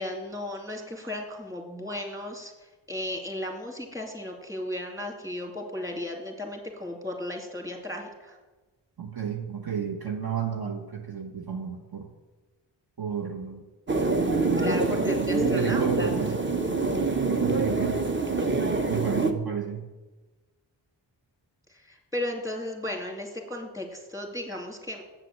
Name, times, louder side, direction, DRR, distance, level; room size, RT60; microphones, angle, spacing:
voice 1, 0.0-8.4 14.6-16.1 21.7-25.0, left 1 dB, 5° right, 1 dB, 2.5 m, -35 dB
voice 2, 9.0-12.1 13.0-13.6 14.8-14.9 15.4-16.4 17.4-18.0 18.9-19.9, right 7 dB, 50° right, 1 dB, 1.2 m, -32 dB
sound 1, 13.9-19.3, right 3 dB, 25° right, 1.0 m, -25 dB
7.5 x 7.5 x 6.8 m, 1.2 s
cardioid pair, 50°, 48 cm